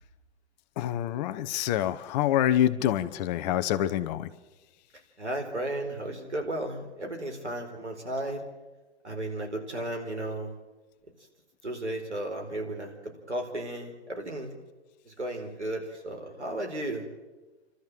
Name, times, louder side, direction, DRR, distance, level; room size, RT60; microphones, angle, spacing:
voice 1, 0.8-4.3, left 12 dB, 40° left, 13 dB, 1.1 m, -26 dB
voice 2, 5.2-8.4 9.0-10.6 11.6-14.5 15.0-17.1, right 1 dB, 85° right, 3 dB, 4.5 m, -34 dB
29.5 x 13.0 x 7.7 m, 1.2 s
figure-of-eight pair, 115°, 33 cm